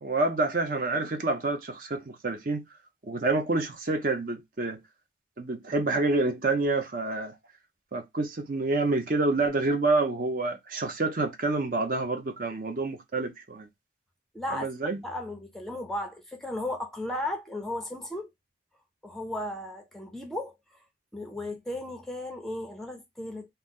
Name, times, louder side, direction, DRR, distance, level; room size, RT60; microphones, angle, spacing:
voice 1, 0.0-2.6 3.0-4.8 5.4-7.3 7.9-13.7 14.5-15.0, right 3 dB, 45° right, 0.6 m, -28 dB
voice 2, 14.3-14.7 15.0-18.3 19.0-20.5 21.1-23.5, left 1 dB, ahead, 0.5 m, -35 dB
2.8 x 2.0 x 3.5 m
head